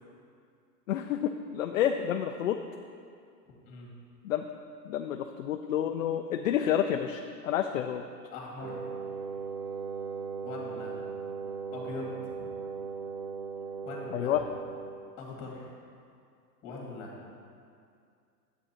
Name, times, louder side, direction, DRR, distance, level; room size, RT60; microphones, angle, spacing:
voice 1, 0.9-2.6 4.2-4.5 4.8-8.0 14.1-14.4, left 10 dB, 55° left, 6 dB, 0.5 m, -29 dB
voice 2, 3.6-4.0 8.3-8.9 10.4-11.1 11.7-12.1 12.4-12.5 13.8-14.4 15.2-15.7 16.6-17.2, left 3 dB, 25° left, -2 dB, 2.2 m, -42 dB
Wind instrument woodwind instrument, 8.6-15.2, right 5 dB, 50° right, 1.1 m, -38 dB
9.5 x 8.0 x 4.3 m, 2.3 s
hypercardioid pair, 155°, 49 cm